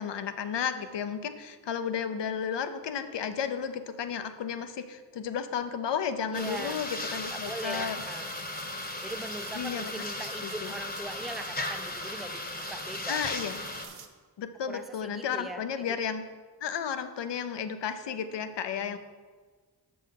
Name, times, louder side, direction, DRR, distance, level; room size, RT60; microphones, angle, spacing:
voice 1, 0.0-8.0 9.5-10.0 10.4-10.7 13.1-13.6 14.4-16.2 16.6-19.0, left 7 dB, 80° left, 9 dB, 0.7 m, -33 dB
sound 1, 6.3-13.9, left 2 dB, 20° left, 0.9 m, -37 dB
voice 2, 6.3-6.8 7.3-8.3 9.0-13.2 14.7-16.0 18.8-19.0, right 2 dB, ahead, 9 dB, 0.4 m, -41 dB
sound 2, 6.3-14.1, right 6 dB, 65° right, 0.8 m, -47 dB
6.4 x 5.5 x 5.7 m, 1.5 s
cardioid pair, 50°, 42 cm